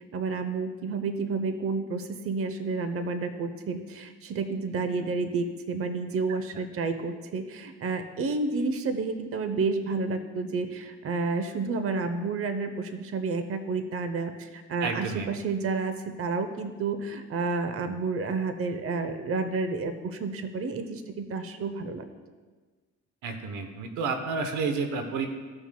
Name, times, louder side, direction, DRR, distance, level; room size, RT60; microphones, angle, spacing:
voice 1, 0.1-22.1, right 4 dB, 50° right, 9 dB, 0.8 m, -30 dB
voice 2, 14.8-15.3 23.2-25.3, right 4 dB, 90° right, 6 dB, 0.9 m, -30 dB
15.0 x 6.2 x 2.2 m, 1.4 s
cardioid pair, 90°, 30 cm